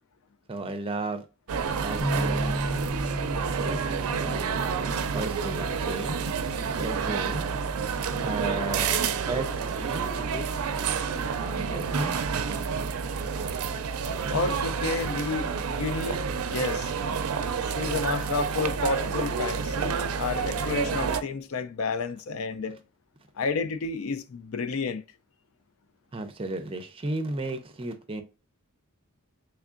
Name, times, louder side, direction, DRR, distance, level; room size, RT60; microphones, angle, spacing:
voice 1, 0.5-1.2 1.8-2.8 3.3-3.8 4.1-6.2 6.8-7.5 8.2-9.0 9.3-10.4 11.4-12.2 26.1-28.2, right 2 dB, 25° right, 0.5 m, -34 dB
sound 1, 1.5-21.2, right 6 dB, 85° right, 0.4 m, -29 dB
Bass guitar, 2.0-8.2, equal, 5° left, 0.8 m, -35 dB
voice 2, 14.3-16.2 16.5-16.9 17.7-22.8 23.4-25.0, left 4 dB, 70° left, 0.4 m, -30 dB
3.5 x 3.4 x 2.5 m
head